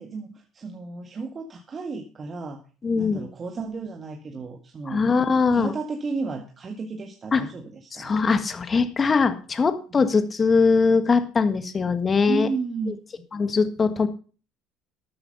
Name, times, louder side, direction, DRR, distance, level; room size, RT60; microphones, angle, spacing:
voice 1, 0.0-2.6 3.0-5.0 5.5-8.2 10.0-10.1 12.3-13.0, right 4 dB, 35° right, 4 dB, 1.8 m, -33 dB
voice 2, 2.8-3.3 4.9-5.7 7.3-7.5 8.0-12.5 13.3-14.1, left 4 dB, 30° left, 10 dB, 1.7 m, -21 dB
13.0 x 9.6 x 5.6 m, 0.38 s
hypercardioid pair, 70°, 0 cm